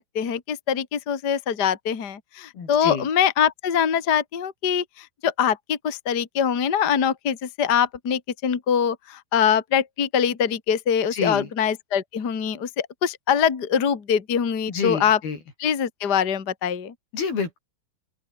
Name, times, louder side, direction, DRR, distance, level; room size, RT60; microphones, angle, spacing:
voice 1, 0.0-15.2 15.6-16.9, left 8 dB, 35° left, 2.1 m, -23 dB
voice 2, 2.5-3.1 11.1-11.5 14.7-15.4 17.1-17.6, left 5 dB, 80° left, 7.6 m, -28 dB
open air
omnidirectional pair, 4.3 m